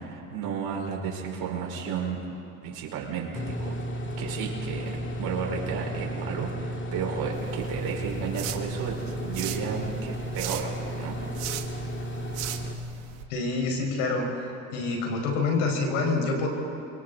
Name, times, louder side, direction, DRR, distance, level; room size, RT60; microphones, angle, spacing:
voice 1, 0.0-2.2 2.6-3.3 3.6-4.9 5.2-8.9 9.2-11.2, right 6 dB, 60° right, -1 dB, 4.9 m, -33 dB
sound 1, 3.3-12.8, equal, 30° left, 2.5 m, -34 dB
sound 2, 7.3-13.2, right 12 dB, 75° right, 1.7 m, -39 dB
voice 2, 13.3-14.3 14.7-16.5, left 3 dB, 80° left, 1 dB, 5.2 m, -26 dB
28.5 x 23.5 x 4.1 m, 2.6 s
hypercardioid pair, 80°, 41 cm